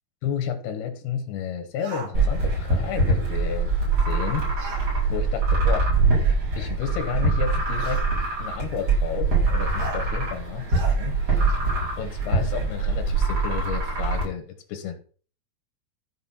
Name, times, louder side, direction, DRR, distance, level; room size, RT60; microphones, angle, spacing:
voice 1, 0.2-3.7 4.1-4.5 5.1-5.9 6.6-8.0 8.4-11.6 12.0-14.4 14.7-14.9, left 8 dB, 90° left, 7 dB, 3.3 m, -32 dB
sound 1, 1.8-2.1 4.6-4.9 6.1-6.2 7.8-8.1 9.8-10.0 10.7-11.0, right 3 dB, 60° right, 4.3 m, -37 dB
sound 2, 2.1-14.2, right 3 dB, 40° right, 5.9 m, -23 dB
14.0 x 5.3 x 5.7 m, 0.41 s
omnidirectional pair, 4.4 m